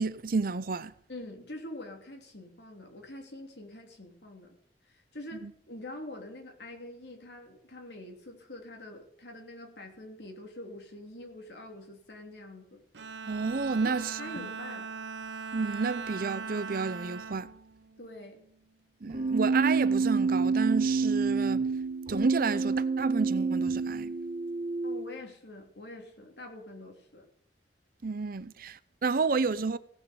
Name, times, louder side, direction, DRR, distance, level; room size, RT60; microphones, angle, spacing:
voice 1, 0.0-0.9 5.4-5.5 13.3-14.2 15.5-17.5 19.0-21.7 22.1-24.1 28.0-29.8, right 4 dB, 55° right, 0.6 m, -30 dB
voice 2, 1.1-4.6 5.1-12.8 13.8-14.9 18.0-18.4 24.8-27.2, left 1 dB, 70° left, 3.1 m, -45 dB
Bowed string instrument, 12.9-18.5, right 5 dB, 90° right, 0.9 m, -40 dB
Keyboard (musical), 19.1-25.1, right 4 dB, 40° right, 2.3 m, -28 dB
17.0 x 6.5 x 6.9 m
head